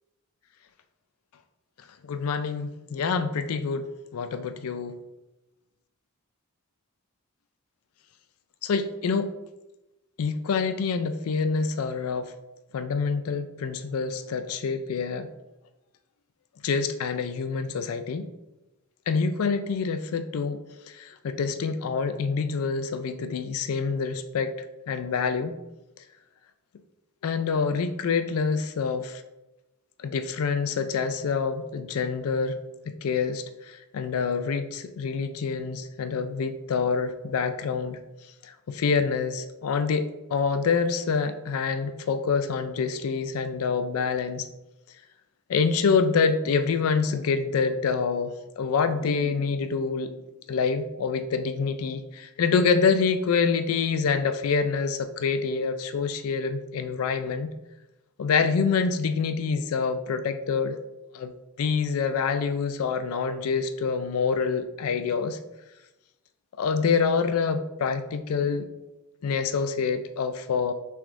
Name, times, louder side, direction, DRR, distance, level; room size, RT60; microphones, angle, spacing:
voice 1, 2.0-5.0 8.6-9.3 10.2-12.3 12.7-15.3 16.6-18.3 19.1-20.6 20.9-24.5 24.9-25.6 27.2-29.2 30.0-32.6 32.9-38.0 38.4-40.0 40.3-44.5 45.5-50.2 50.5-57.5 58.2-60.8 61.1-61.3 61.6-65.4 66.6-68.7 69.2-70.7, left 5 dB, 75° left, 9 dB, 0.4 m, -26 dB
6.0 x 3.4 x 2.5 m, 0.98 s
head